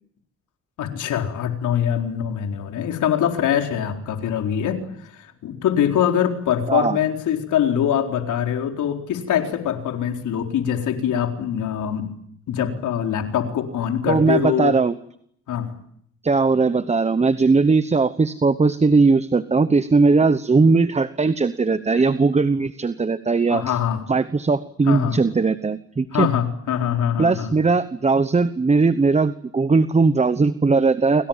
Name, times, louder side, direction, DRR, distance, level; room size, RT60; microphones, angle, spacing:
voice 1, 0.8-12.1 12.5-14.7 15.5-15.7 23.5-24.0 24.9-25.2 26.1-27.5, left 9 dB, 80° left, 4 dB, 4.4 m, -23 dB
voice 2, 14.1-14.9 16.2-23.8 24.1-26.3 27.2-31.3, right 4 dB, 20° right, 13 dB, 1.0 m, -19 dB
28.5 x 25.0 x 7.5 m, 0.68 s
cardioid pair, 90°, 30 cm